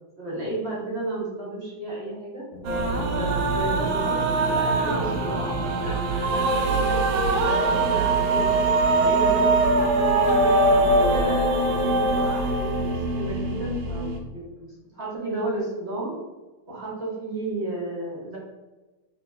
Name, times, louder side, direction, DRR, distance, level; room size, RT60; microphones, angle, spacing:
voice 1, 0.2-2.4 3.1-10.2 10.7-16.1 16.7-18.4, right 1 dB, 35° right, -6 dB, 1.2 m, -33 dB
sound 1, 2.5-6.8, left 3 dB, 70° left, 0.9 m, -39 dB
sound 2, 2.6-14.2, right 2 dB, 75° right, 1.3 m, -22 dB
3.5 x 3.0 x 3.2 m, 1.2 s
omnidirectional pair, 2.3 m